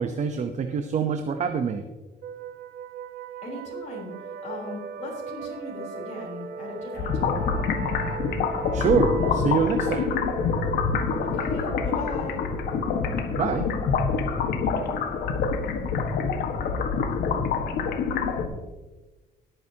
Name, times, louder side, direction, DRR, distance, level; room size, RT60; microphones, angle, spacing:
voice 1, 0.0-1.8 8.7-10.1 13.4-13.7, right 6 dB, 45° right, 7 dB, 0.9 m, -25 dB
sound 1, 2.2-17.6, right 6 dB, 70° right, 1.2 m, -38 dB
voice 2, 3.4-7.6 11.2-12.4, left 2 dB, 45° left, -5 dB, 3.9 m, -38 dB
sound 2, 7.0-18.5, left 5 dB, 65° left, 1.5 m, -26 dB
21.0 x 9.1 x 2.9 m, 1.1 s
cardioid pair, 110°, 17 cm